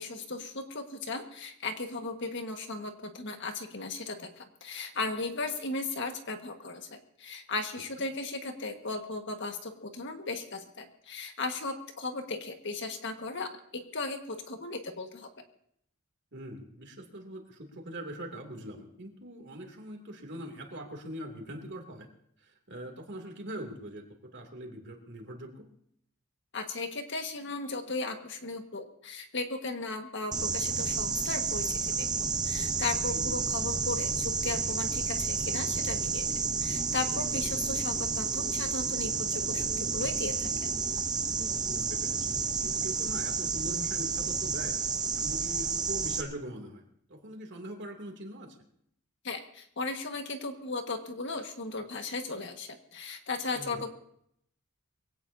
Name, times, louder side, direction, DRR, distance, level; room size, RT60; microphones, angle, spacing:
voice 1, 0.0-13.5 13.9-15.3 26.5-36.2 36.6-40.7 49.2-54.0, left 3 dB, 55° left, 5 dB, 1.6 m, -36 dB
voice 2, 16.3-22.1 22.4-24.0 24.3-25.7 33.1-33.4 41.6-42.3 42.6-44.8 45.2-46.8 47.1-48.6 53.5-53.8, right 1 dB, 55° right, 2 dB, 2.7 m, -42 dB
sound 1, 30.3-46.2, right 5 dB, 20° right, 0.8 m, -31 dB
23.0 x 17.0 x 2.8 m, 0.70 s
head